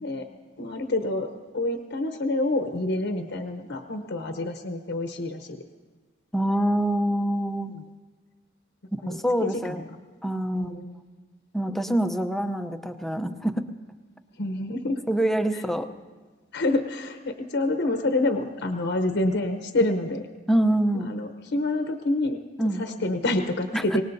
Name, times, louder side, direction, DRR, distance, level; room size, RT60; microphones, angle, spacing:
voice 1, 0.6-5.6 7.7-7.8 9.0-9.8 10.5-11.0 14.4-15.0 15.5-15.6 16.5-20.2 20.9-22.4 22.8-24.0, left 2 dB, 60° left, 6 dB, 0.8 m, -27 dB
voice 2, 6.3-7.7 9.1-9.8 10.2-10.8 11.5-13.7 15.1-15.9 20.5-21.1 22.6-22.9 23.7-24.0, right 1 dB, ahead, 7 dB, 0.6 m, -25 dB
24.5 x 19.0 x 2.7 m, 1.4 s
head